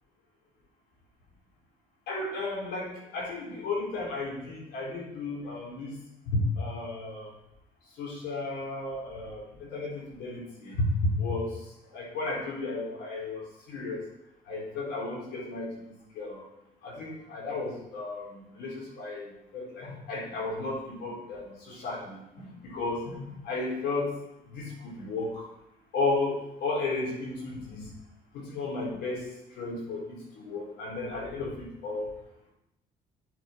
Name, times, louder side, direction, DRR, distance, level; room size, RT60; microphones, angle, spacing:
voice 1, 2.1-6.0 6.3-7.3 8.0-11.6 11.9-13.4 13.7-14.0 14.5-16.4 16.8-24.1 24.5-25.4 25.9-27.9 28.3-29.2 29.5-32.1, left 2 dB, 80° left, -4 dB, 4.1 m, -33 dB
10.5 x 7.0 x 4.5 m, 0.85 s
cardioid pair, 110°, 17 cm